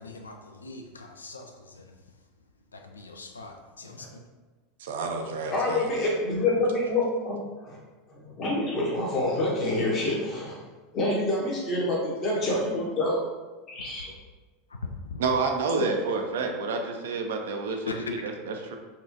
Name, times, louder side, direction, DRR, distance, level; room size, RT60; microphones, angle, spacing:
voice 1, 0.0-2.0 2.7-4.2 12.5-12.6 13.8-13.9 15.1-15.2 17.9-18.2, left 3 dB, 85° left, 4 dB, 0.3 m, -40 dB
voice 2, 4.8-5.9 15.2-17.9 18.2-18.8, right 4 dB, 70° right, 3 dB, 0.4 m, -29 dB
voice 3, 5.5-7.8 8.1-10.6 10.9-13.2 13.7-14.1 15.8-15.9, left 2 dB, 40° left, -5 dB, 1.0 m, -27 dB
4.1 x 2.5 x 2.6 m, 1.3 s
figure-of-eight pair, 80°, 0 cm